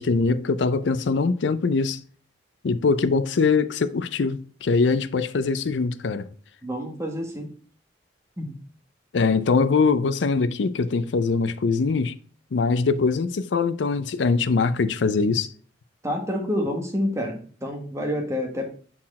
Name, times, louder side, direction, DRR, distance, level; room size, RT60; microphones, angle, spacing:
voice 1, 0.0-2.0 2.6-6.3 9.1-12.1 12.5-15.5, left 4 dB, 70° left, 0.5 m, -22 dB
voice 2, 6.6-7.5 8.4-8.5 16.0-18.7, equal, 15° right, 1.4 m, -28 dB
5.8 x 4.3 x 4.2 m
head